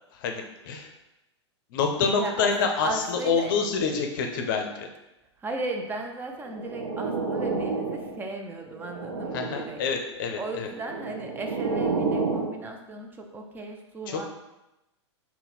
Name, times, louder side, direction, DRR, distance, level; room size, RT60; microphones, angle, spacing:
voice 1, 0.1-0.9 1.7-4.9 9.3-10.7 14.1-14.2, left 5 dB, 45° left, 3 dB, 0.6 m, -27 dB
voice 2, 2.1-2.5 2.8-3.5 5.4-9.8 10.3-14.3, right 2 dB, 15° right, 3 dB, 0.4 m, -36 dB
sound 1, 6.4-8.2 8.7-9.8 10.7-12.6, right 4 dB, 65° right, 0.5 m, -30 dB
3.8 x 2.1 x 4.2 m, 0.95 s
figure-of-eight pair, 100°, 15 cm